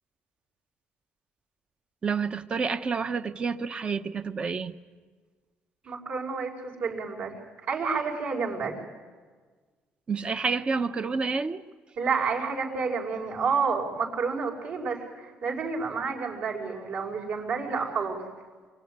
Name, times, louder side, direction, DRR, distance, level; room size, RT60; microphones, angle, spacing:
voice 1, 2.0-4.7 10.1-11.6, right 5 dB, 30° right, 0.9 m, -29 dB
voice 2, 5.8-7.4 7.7-8.8 12.0-18.2, right 5 dB, 60° right, 5.6 m, -30 dB
24.5 x 24.5 x 9.6 m
cardioid pair, 145°, 4 cm